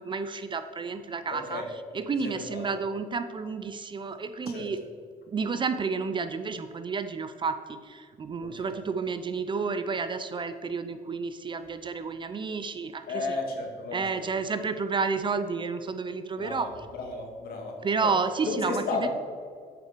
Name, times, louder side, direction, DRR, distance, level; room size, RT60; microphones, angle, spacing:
voice 1, 0.0-4.8 5.3-13.4 13.9-16.7 17.8-19.1, right 5 dB, 30° right, 10 dB, 0.4 m, -31 dB
voice 2, 1.3-1.7 2.1-2.6 4.5-4.7 8.4-8.7 13.1-14.3 16.4-18.1 18.4-19.1, left 3 dB, 65° left, 2 dB, 1.7 m, -34 dB
7.6 x 5.6 x 5.1 m, 2.1 s
cardioid pair, 110°, 17 cm